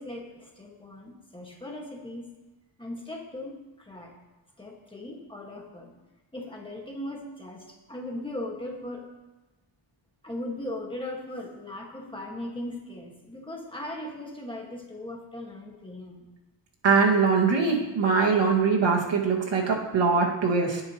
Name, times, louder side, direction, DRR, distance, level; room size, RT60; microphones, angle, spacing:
voice 1, 0.0-2.3 2.8-4.1 4.6-5.9 6.3-9.1 10.2-16.3, left 1 dB, 10° left, -1 dB, 1.6 m, -38 dB
voice 2, 16.8-20.8, right 5 dB, 75° right, -1 dB, 2.0 m, -22 dB
18.5 x 8.8 x 3.0 m, 1.1 s
wide cardioid pair, 175°, 44 cm